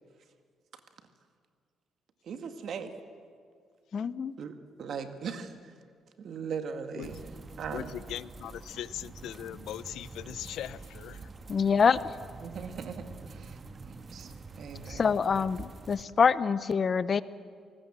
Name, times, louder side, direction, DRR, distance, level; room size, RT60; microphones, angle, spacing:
voice 1, 2.2-2.9 4.4-5.5 6.2-7.2 7.6-7.9 12.4-13.6 14.1-15.0, right 6 dB, 65° right, 8 dB, 1.9 m, -39 dB
voice 2, 3.9-4.3 11.5-12.0 14.9-17.2, left 6 dB, 45° left, 17 dB, 0.7 m, -25 dB
sound 1, 7.0-16.0, right 4 dB, 35° right, 1.4 m, -46 dB
voice 3, 7.7-11.3, left 11 dB, 80° left, 19 dB, 0.5 m, -40 dB
26.0 x 18.5 x 7.5 m, 2.1 s
cardioid pair, 90°, 0 cm